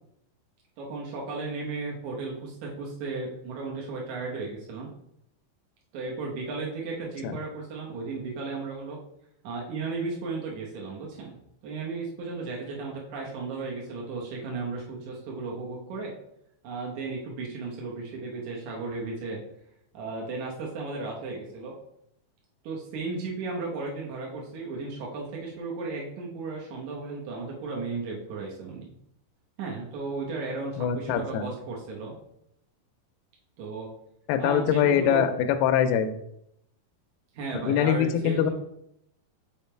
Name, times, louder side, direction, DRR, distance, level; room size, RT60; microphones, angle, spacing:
voice 1, 0.8-4.9 5.9-9.0 9.4-11.4 11.6-16.1 16.6-19.4 19.9-21.8 22.6-28.9 29.6-32.1 33.6-33.9 34.4-35.3 37.3-38.5, right 3 dB, 80° right, -3 dB, 1.7 m, -35 dB
voice 2, 30.8-31.5 34.3-36.1 37.7-38.5, left 9 dB, 85° left, 7 dB, 2.3 m, -23 dB
6.1 x 3.6 x 4.4 m, 0.76 s
omnidirectional pair, 4.9 m